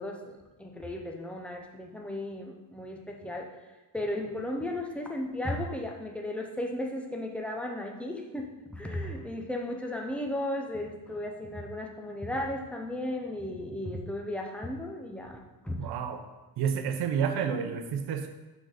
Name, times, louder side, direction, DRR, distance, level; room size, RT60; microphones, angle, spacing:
voice 1, 0.0-3.5 3.9-15.8, left 1 dB, 5° left, 1 dB, 0.5 m, -35 dB
voice 2, 15.8-16.2 16.6-18.3, right 7 dB, 65° right, 7 dB, 0.8 m, -30 dB
6.2 x 4.1 x 4.9 m, 1.1 s
cardioid pair, 170°, 41 cm